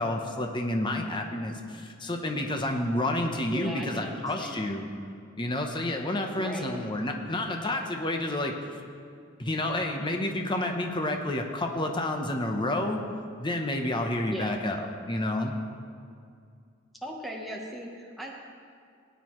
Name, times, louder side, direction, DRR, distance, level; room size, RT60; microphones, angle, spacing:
voice 1, 0.0-4.9 5.4-8.5 9.4-13.0 13.4-15.5, left 1 dB, 25° left, 3 dB, 0.8 m, -29 dB
voice 2, 3.5-4.6 6.4-6.8 14.3-14.6 17.0-18.3, equal, ahead, -1 dB, 1.0 m, -37 dB
18.0 x 9.2 x 3.1 m, 2.3 s
head